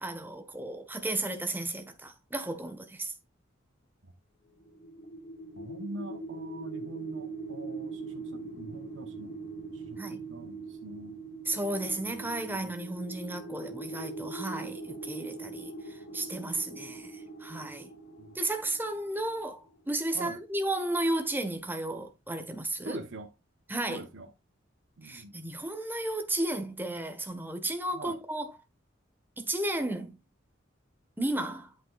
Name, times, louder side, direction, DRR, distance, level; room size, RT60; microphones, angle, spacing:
voice 1, 0.0-3.1 10.0-10.2 11.5-17.9 18.3-23.0 23.7-24.0 25.0-28.5 29.4-30.2 31.2-31.7, right 1 dB, 10° right, 1.3 m, -33 dB
sound 1, 4.6-19.6, right 3 dB, 55° left, 4.8 m, -42 dB
voice 2, 5.5-9.4 9.7-11.2 12.0-12.7 18.2-18.4 20.1-20.4 22.8-23.3 23.9-24.3 25.0-25.4 27.9-28.2, right 2 dB, 70° right, 1.0 m, -44 dB
8.4 x 8.3 x 2.4 m
head